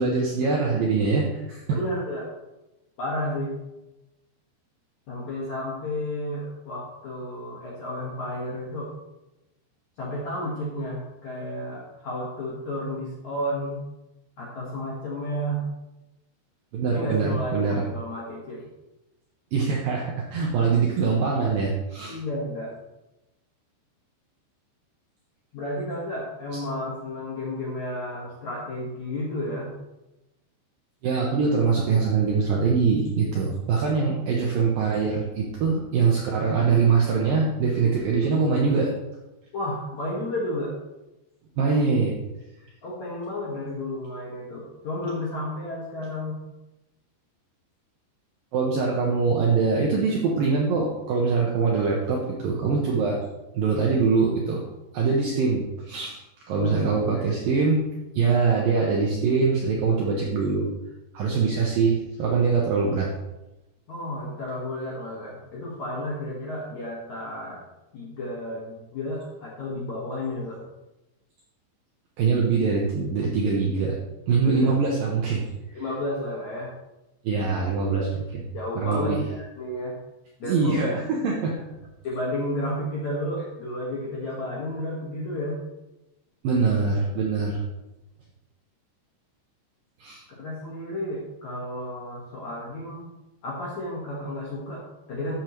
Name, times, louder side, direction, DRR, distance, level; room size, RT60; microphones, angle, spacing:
voice 1, 0.0-1.6 16.7-17.8 19.5-22.2 31.0-38.9 41.6-42.2 48.5-53.2 53.5-54.6 54.9-56.2 56.5-57.8 58.2-60.7 61.1-63.1 72.2-74.0 74.3-75.4 77.2-78.1 78.3-78.4 78.8-79.2 80.4-81.5 86.4-87.6 90.0-90.2, right 4 dB, 75° right, -2 dB, 2.1 m, -23 dB
voice 2, 1.7-2.3 3.0-3.6 5.1-8.9 10.0-13.8 14.4-15.6 16.8-18.6 22.0-22.7 25.5-29.7 39.5-40.8 42.8-46.4 56.5-57.2 63.9-67.6 67.9-70.6 74.3-74.7 75.7-76.7 77.8-78.1 78.5-80.0 80.4-81.0 82.0-85.6 90.3-93.1 93.4-95.3, left 1 dB, 60° left, -5 dB, 1.9 m, -32 dB
13.0 x 7.3 x 3.1 m, 0.98 s
omnidirectional pair, 5.4 m